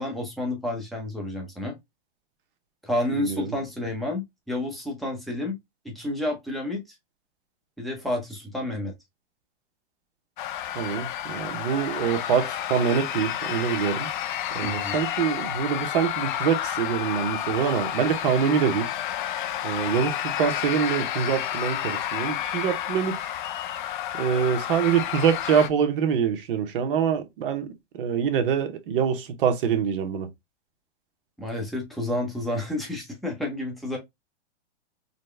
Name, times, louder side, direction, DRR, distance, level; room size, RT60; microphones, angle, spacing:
voice 1, 0.0-1.7 2.8-5.5 5.8-6.8 7.8-8.9 14.6-15.0 31.4-34.0, left 1 dB, ahead, 0.7 m, -30 dB
voice 2, 3.2-3.5 10.7-14.1 14.5-18.9 19.6-23.2 24.1-27.7 28.0-30.3, right 7 dB, 50° right, 0.9 m, -25 dB
sound 1, 10.4-25.7, left 11 dB, 45° left, 0.5 m, -30 dB
3.9 x 2.1 x 3.2 m
hypercardioid pair, 150°, 35 cm